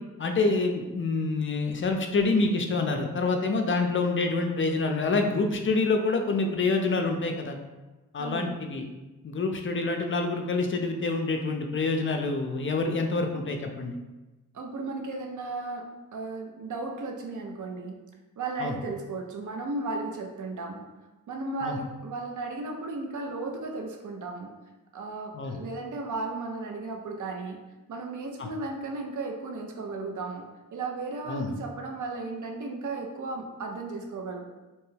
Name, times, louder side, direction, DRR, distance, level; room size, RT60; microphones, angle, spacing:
voice 1, 0.2-7.6 8.1-8.9 9.2-14.0 18.6-18.7 21.6-21.8 25.3-25.6 28.4-28.5 31.3-31.5, left 3 dB, 35° left, 4 dB, 0.4 m, -27 dB
voice 2, 8.2-8.6 14.5-15.9 16.1-18.0 18.4-20.9 21.3-24.5 24.9-27.6 27.9-30.5 30.7-34.4, right 3 dB, 55° right, 2 dB, 0.6 m, -35 dB
2.9 x 2.2 x 3.2 m, 1.1 s
cardioid pair, 60°, 35 cm